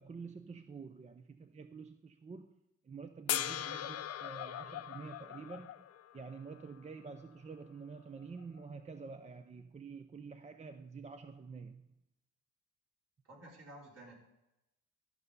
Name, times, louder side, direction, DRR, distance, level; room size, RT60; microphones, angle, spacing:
voice 1, 0.0-5.9 6.1-11.9, right 5 dB, 25° right, 0.5 m, -48 dB
sound 1, 3.3-6.5 8.6-8.7, left 11 dB, 55° left, 0.6 m, -39 dB
voice 2, 13.2-14.1, right 1 dB, 55° right, 4.8 m, -52 dB
13.5 x 5.6 x 5.4 m
cardioid pair, 90°, 30 cm